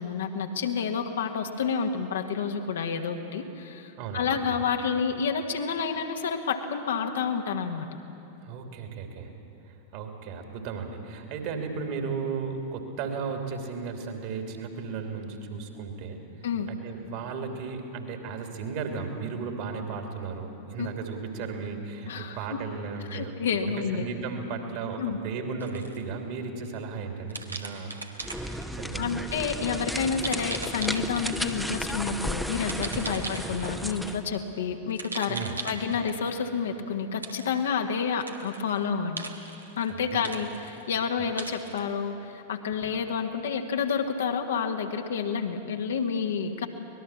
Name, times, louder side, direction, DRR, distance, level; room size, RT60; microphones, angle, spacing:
voice 1, 0.0-7.9 16.4-16.7 20.8-20.9 22.1-22.6 23.1-24.1 25.0-25.2 29.0-35.4 35.6-39.3 39.8-46.7, left 6 dB, 65° left, 4 dB, 1.6 m, -29 dB
voice 2, 4.0-4.6 8.4-9.3 9.9-16.2 16.7-23.4 23.7-27.9 28.7-29.2 33.0-33.1 35.3-35.6 40.1-40.2, right 5 dB, 50° right, 4 dB, 3.0 m, -35 dB
sound 1, 25.6-26.0 27.3-28.8 30.2-31.7 32.6-33.9 34.9-36.3 37.2-37.7 38.1-38.8 39.2-39.9 40.2-40.9 41.4-41.8, right 3 dB, 80° right, 1.6 m, -38 dB
sound 2, 28.2-34.2, equal, ahead, 1.0 m, -34 dB
24.5 x 19.5 x 7.4 m, 2.8 s
figure-of-eight pair, 90°, 0 cm